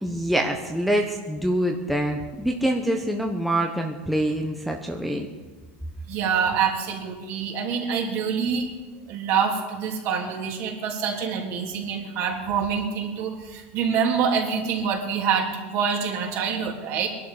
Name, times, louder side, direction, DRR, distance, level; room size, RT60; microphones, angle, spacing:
voice 1, 0.0-5.3, right 1 dB, ahead, 1 dB, 1.1 m, -25 dB
voice 2, 6.1-8.7 9.1-17.1, right 6 dB, 50° right, 1 dB, 3.3 m, -26 dB
22.0 x 11.5 x 5.0 m, 1.3 s
supercardioid pair, 150°, 6 cm